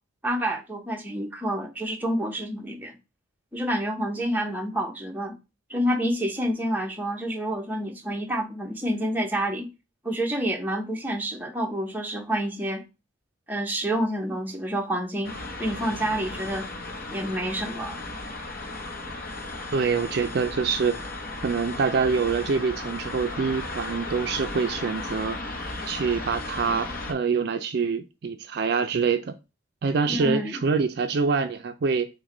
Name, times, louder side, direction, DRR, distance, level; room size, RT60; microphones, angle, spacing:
voice 1, 0.2-3.0 3.5-5.4 5.7-9.7 10.0-12.8 13.5-16.7 17.1-18.0 30.1-30.6, equal, 10° right, 0.7 m, -28 dB
sound 1, 15.2-27.1, left 2 dB, 45° left, 0.8 m, -35 dB
voice 2, 19.7-21.0 21.4-25.4 25.9-29.3 29.8-32.1, right 5 dB, 55° right, 0.4 m, -25 dB
6.1 x 2.2 x 3.7 m
head